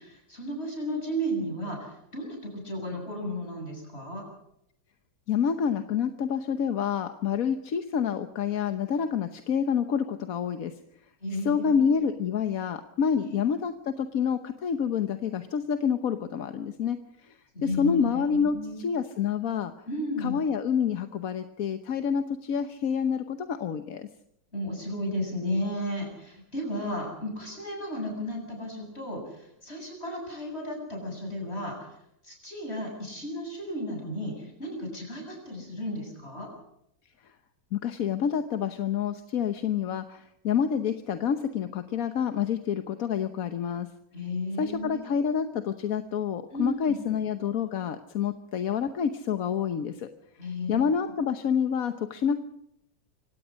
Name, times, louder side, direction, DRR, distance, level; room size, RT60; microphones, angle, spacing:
voice 1, 0.0-4.2 11.2-11.9 13.2-13.4 17.5-18.8 19.9-20.4 24.5-32.0 32.2-36.5 44.1-45.2 46.5-46.7 50.4-50.8, equal, 35° left, 1 dB, 8.2 m, -34 dB
voice 2, 5.3-10.7 11.3-19.7 20.2-24.1 37.7-43.9 44.6-50.1 50.4-52.4, left 7 dB, 55° left, 9 dB, 1.3 m, -28 dB
25.5 x 17.0 x 6.3 m, 0.76 s
omnidirectional pair, 2.0 m